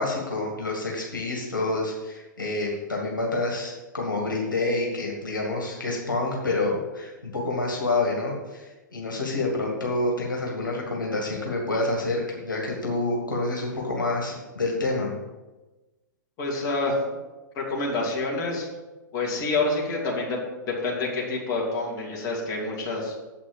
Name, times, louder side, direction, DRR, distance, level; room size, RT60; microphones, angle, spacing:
voice 1, 0.0-15.1, left 2 dB, 80° left, -2 dB, 2.1 m, -28 dB
voice 2, 16.4-16.9 17.5-18.7 19.1-20.4 20.8-23.1, left 3 dB, 30° left, -3 dB, 2.8 m, -27 dB
7.8 x 6.0 x 7.1 m, 1.1 s
figure-of-eight pair, 105°, 11 cm